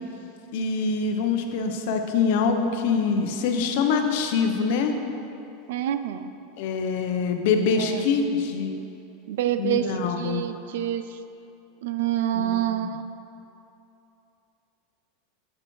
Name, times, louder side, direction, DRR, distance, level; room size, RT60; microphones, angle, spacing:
voice 1, 0.5-4.9 6.6-8.8 9.6-10.4 12.3-12.9, left 5 dB, 65° left, 5 dB, 0.7 m, -24 dB
voice 2, 5.7-6.3 7.8-8.1 9.3-11.0 11.8-13.0, right 11 dB, 75° right, 11 dB, 0.4 m, -27 dB
7.8 x 7.6 x 3.1 m, 2.8 s
supercardioid pair, 130°, 0 cm